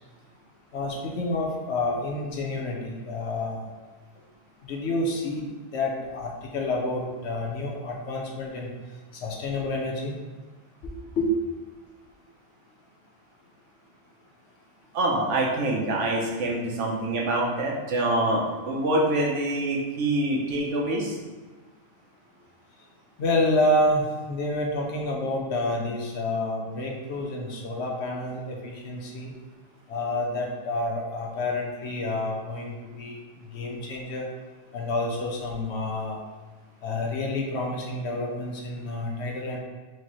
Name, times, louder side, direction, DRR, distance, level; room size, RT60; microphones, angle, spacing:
voice 1, 0.7-3.7 4.6-5.5 5.7-8.7 9.2-10.1 11.2-11.3 23.2-29.3 29.9-33.2 33.5-34.3 34.7-36.2 36.8-39.6, left 2 dB, 65° left, -1 dB, 0.9 m, -28 dB
voice 2, 14.9-21.2, right 1 dB, 75° right, -2 dB, 1.1 m, -25 dB
4.6 x 2.8 x 3.0 m, 1.3 s
omnidirectional pair, 1.3 m